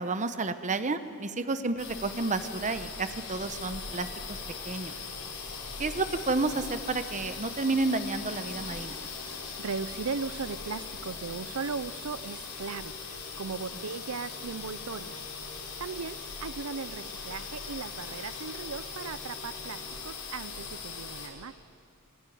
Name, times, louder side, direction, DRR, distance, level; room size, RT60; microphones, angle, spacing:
voice 1, 0.0-4.4 4.6-5.0 5.8-9.0, right 3 dB, 35° right, 10 dB, 0.9 m, -31 dB
sound 1, 1.8-21.3, left 4 dB, 90° left, 5.1 m, -40 dB
voice 2, 9.6-15.2 15.8-21.5, right 5 dB, 85° right, 16 dB, 0.6 m, -37 dB
25.5 x 16.5 x 9.3 m, 2.4 s
head